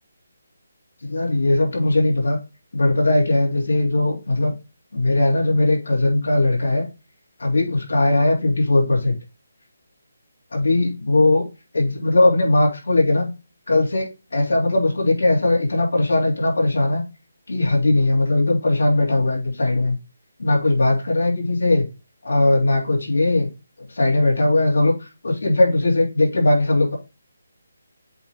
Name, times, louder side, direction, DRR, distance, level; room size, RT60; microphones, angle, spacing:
voice 1, 1.0-2.4 2.7-4.5 4.9-6.8 7.4-9.2 10.5-11.4 11.7-13.3 13.7-17.0 17.5-20.0 20.4-21.8 22.2-23.5 23.9-26.9, left 2 dB, 85° left, -1 dB, 3.2 m, -19 dB
7.7 x 3.4 x 3.7 m, 0.30 s
hypercardioid pair, 165°, 0 cm